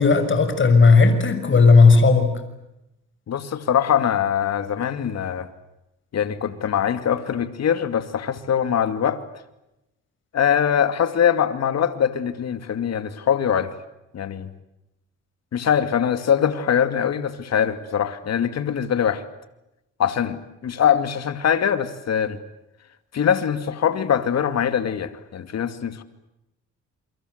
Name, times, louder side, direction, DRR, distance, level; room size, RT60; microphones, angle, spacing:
voice 1, 0.0-2.3, left 4 dB, 40° left, 9 dB, 6.4 m, -14 dB
voice 2, 3.3-5.5 6.1-9.2 10.3-13.7 14.1-14.5 15.5-19.2 20.0-22.4 23.1-26.0, left 8 dB, 60° left, 11 dB, 2.5 m, -22 dB
28.5 x 24.5 x 8.1 m, 0.90 s
cardioid pair, 90°, 30 cm